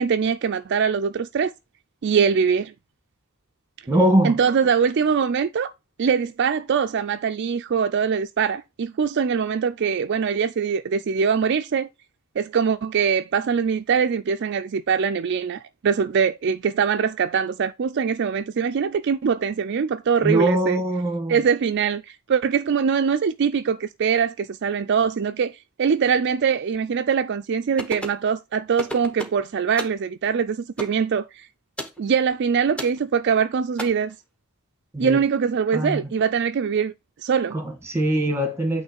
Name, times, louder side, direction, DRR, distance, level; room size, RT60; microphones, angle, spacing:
voice 1, 0.0-1.5 2.0-2.7 4.2-5.7 6.0-11.9 12.4-20.8 21.3-31.5 32.0-34.2 35.0-36.9 37.2-37.6, right 6 dB, 55° right, 0.4 m, -22 dB
voice 2, 3.9-4.4 20.2-21.3 34.9-35.2 35.7-36.1 37.5-38.8, right 1 dB, 10° right, 1.6 m, -22 dB
sound 1, 27.8-28.2 28.8-29.4 29.8-30.0 30.8-31.0 31.8-32.0 32.8-33.0 33.8-33.9, right 1 dB, 5° left, 1.1 m, -32 dB
8.7 x 3.2 x 4.4 m
head